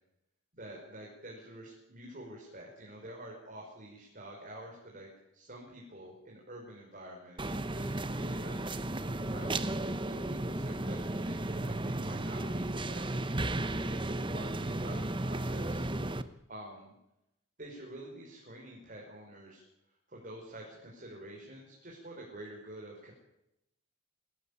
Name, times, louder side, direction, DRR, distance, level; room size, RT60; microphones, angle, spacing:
voice 1, 0.5-16.9 17.6-19.6 20.1-23.1, right 1 dB, 40° right, -2 dB, 5.7 m, -48 dB
sound 1, 7.4-16.2, right 1 dB, 25° right, 1.0 m, -34 dB
26.0 x 17.0 x 8.7 m, 0.86 s
head